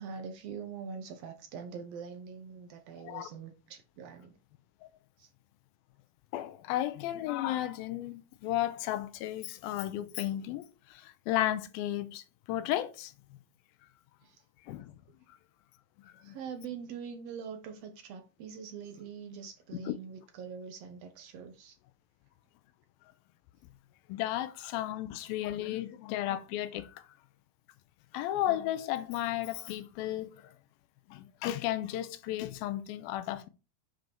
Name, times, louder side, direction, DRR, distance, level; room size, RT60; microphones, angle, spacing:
voice 1, 0.0-4.3 5.2-5.3 14.2-14.4 16.2-21.8, right 6 dB, 75° right, 1.5 m, -43 dB
voice 2, 6.3-13.4 14.7-14.9 16.0-16.4 19.9-20.0 24.1-27.1 28.1-30.5 31.1-33.5, left 13 dB, 90° left, 2.5 m, -34 dB
7.8 x 5.2 x 4.5 m
omnidirectional pair, 4.2 m